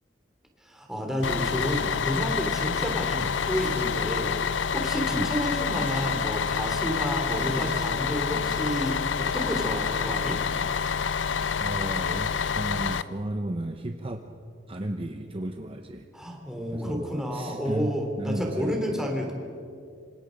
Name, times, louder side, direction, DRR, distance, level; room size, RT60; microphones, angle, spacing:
voice 1, 0.6-10.4 16.1-19.3, equal, 5° right, 1 dB, 3.5 m, -30 dB
Bus, 1.2-13.0, left 6 dB, 70° left, 0.6 m, -28 dB
Zipper (clothing), 1.4-4.5 4.8-4.9 5.2-5.3 5.6-8.0 8.3-8.4, right 3 dB, 65° right, 1.1 m, -45 dB
voice 2, 11.6-14.2 14.7-16.1 16.7-18.8, right 1 dB, 30° right, 5 dB, 0.9 m, -34 dB
27.0 x 26.0 x 5.3 m, 2.4 s
head